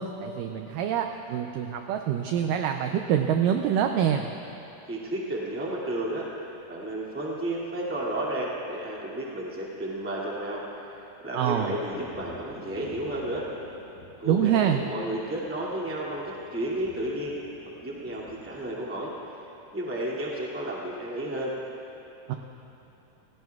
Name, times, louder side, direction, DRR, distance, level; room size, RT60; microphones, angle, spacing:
voice 1, 0.0-4.3 11.3-11.7 14.3-14.8 22.3-22.4, right 9 dB, 85° right, 5 dB, 1.9 m, -25 dB
voice 2, 4.9-6.3 6.7-10.6 11.2-13.4 14.2-16.2 16.5-17.3 17.8-19.1 19.7-21.5, right 1 dB, 5° right, -5 dB, 1.3 m, -32 dB
Thunder, 11.9-18.9, left 3 dB, 60° left, 2.4 m, -49 dB
28.5 x 17.0 x 2.4 m, 2.9 s
omnidirectional pair, 4.5 m